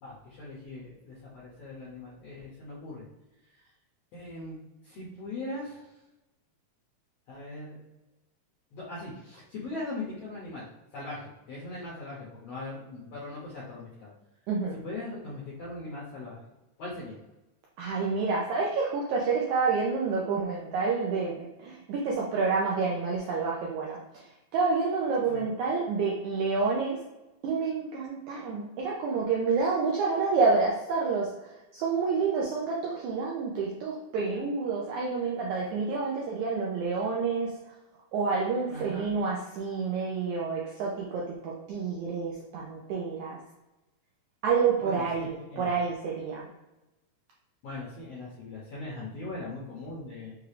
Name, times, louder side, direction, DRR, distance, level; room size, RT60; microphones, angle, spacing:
voice 1, 0.0-3.1 4.1-5.9 7.3-7.8 8.7-10.7 10.9-14.1 14.7-16.4 16.8-17.2 25.3-25.4 38.7-39.1 44.8-45.7 47.6-50.4, left 2 dB, 75° left, -7 dB, 1.5 m, -40 dB
voice 2, 14.5-14.8 17.8-24.2 24.5-27.0 27.4-31.3 31.7-37.5 38.1-43.4 44.4-45.3 45.6-46.5, right 4 dB, 90° right, -3 dB, 1.7 m, -28 dB
6.0 x 2.4 x 3.2 m, 1.0 s
omnidirectional pair, 4.1 m